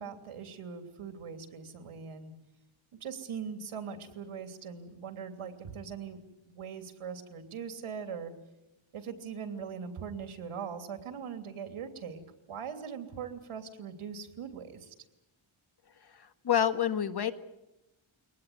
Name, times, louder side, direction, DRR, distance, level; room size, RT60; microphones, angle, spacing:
voice 1, 0.0-2.3 3.0-8.3 8.9-12.2 12.5-14.9, right 6 dB, 85° right, 7 dB, 3.2 m, -41 dB
voice 2, 16.4-17.3, left 9 dB, 50° left, 10 dB, 1.6 m, -27 dB
23.5 x 19.0 x 9.4 m, 0.91 s
wide cardioid pair, 120°, 49 cm